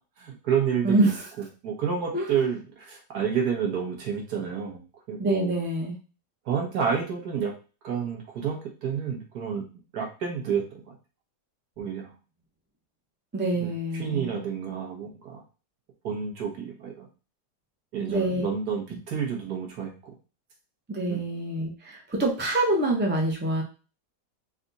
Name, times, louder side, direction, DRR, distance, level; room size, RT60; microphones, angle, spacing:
voice 1, 0.2-1.1 1.6-4.8 5.1-5.5 6.4-7.5 7.8-9.7 9.9-11.0 11.8-12.1 13.6-13.7 14.0-15.4 16.0-17.1 17.9-19.9 21.1-21.2, right 7 dB, 70° right, 0 dB, 1.6 m, -29 dB
voice 2, 0.8-1.3 2.1-2.4 5.2-6.0 13.3-14.4 18.1-18.4 20.9-23.6, right 2 dB, 10° right, 0 dB, 0.5 m, -26 dB
4.2 x 2.4 x 3.9 m, 0.33 s
omnidirectional pair, 1.8 m